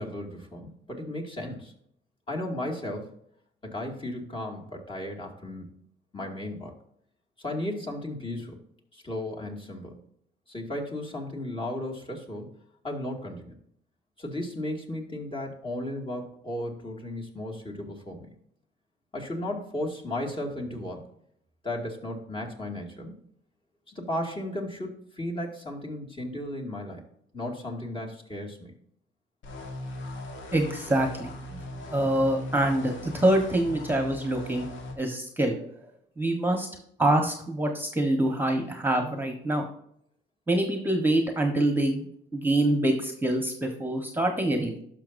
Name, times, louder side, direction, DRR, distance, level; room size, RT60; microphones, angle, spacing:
voice 1, 0.0-1.7 2.3-3.1 3.6-5.7 6.1-6.7 7.4-8.6 8.9-10.0 10.5-12.5 12.8-13.5 14.2-18.3 19.1-21.0 21.6-23.2 23.9-27.0 27.3-28.7, left 1 dB, 25° left, 0 dB, 2.2 m, -35 dB
sound 1, 29.4-34.9, left 1 dB, 75° left, 1.4 m, -39 dB
voice 2, 30.5-31.3 31.9-34.7 35.0-35.6 36.2-36.7 37.0-39.6 40.5-42.1 42.3-44.8, right 1 dB, 10° right, 4 dB, 1.3 m, -25 dB
11.5 x 5.9 x 2.7 m, 0.68 s
cardioid pair, 90°, 20 cm